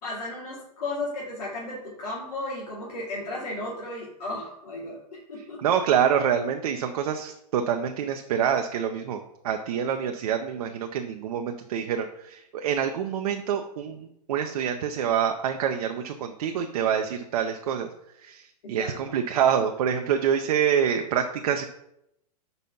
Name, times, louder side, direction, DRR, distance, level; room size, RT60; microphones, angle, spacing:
voice 1, 0.0-5.6 18.8-19.2, left 2 dB, 70° left, -6 dB, 2.3 m, -34 dB
voice 2, 5.6-17.9 18.2-21.6, right 8 dB, 60° right, 5 dB, 0.7 m, -26 dB
5.5 x 4.1 x 5.8 m, 0.80 s
hypercardioid pair, 115°, 21 cm